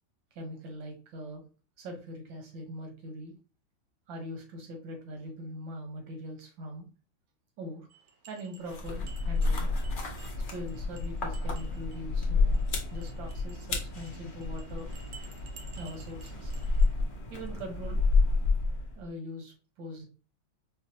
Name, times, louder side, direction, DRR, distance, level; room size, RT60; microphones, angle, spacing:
voice 1, 0.4-1.4 1.8-3.3 4.1-6.9 7.6-7.9 8.3-9.7 10.5-12.6 12.9-14.9 15.8-16.5 17.3-18.0 19.0-20.0, equal, 85° right, 3 dB, 1.8 m, -42 dB
sound 1, 7.9-16.9, right 6 dB, 65° right, 1.0 m, -55 dB
sound 2, 8.6-19.0, left 3 dB, 85° left, 0.4 m, -30 dB
4.7 x 2.3 x 2.7 m, 0.34 s
omnidirectional pair, 2.0 m